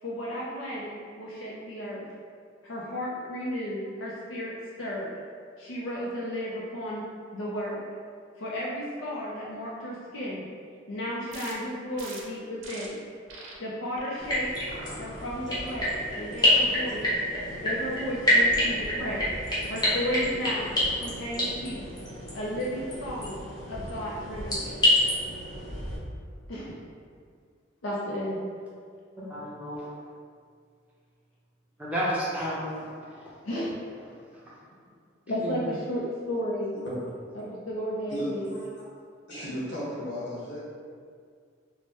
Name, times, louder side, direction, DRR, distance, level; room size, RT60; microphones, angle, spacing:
voice 1, 0.0-2.0 2.6-5.1 5.6-7.0 7.3-7.8 8.4-10.5 10.9-13.0 13.6-14.5 14.9-17.0 17.6-19.2 19.7-21.8 22.3-23.4 23.7-24.6 26.5-26.8 27.8-28.4 33.4-34.2 35.3-36.8 37.3-38.5, equal, 80° left, -5 dB, 0.5 m, -33 dB
sound 1, 11.3-11.5 12.0-12.2 12.6-12.9 13.3-13.5 14.0-14.2 14.7-15.0 15.5-15.8, right 3 dB, 85° right, 0.6 m, -43 dB
sound 2, 14.2-26.0, left 1 dB, 20° left, 0.9 m, -28 dB
voice 2, 29.3-29.8 31.8-32.7 35.4-35.5, equal, 5° right, -8 dB, 0.6 m, -30 dB
voice 3, 38.1-38.6 39.3-40.6, equal, 60° left, -9 dB, 1.5 m, -34 dB
4.6 x 2.1 x 2.9 m, 2.1 s
head